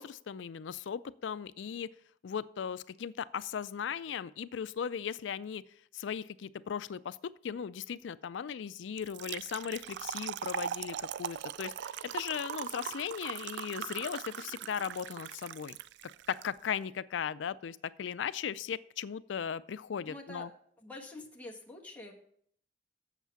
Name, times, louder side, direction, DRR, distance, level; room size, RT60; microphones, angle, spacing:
voice 1, 0.0-1.9 2.2-5.6 5.9-7.2 7.4-15.8 16.3-20.5, left 7 dB, 75° left, 18 dB, 0.4 m, -37 dB
Trickle dribble / Fill (with liquid), 9.0-16.4, right 9 dB, 65° right, 0.3 m, -40 dB
voice 2, 20.1-20.4 20.8-22.1, left 2 dB, 10° left, -1 dB, 1.3 m, -46 dB
8.2 x 7.2 x 5.8 m, 0.64 s
head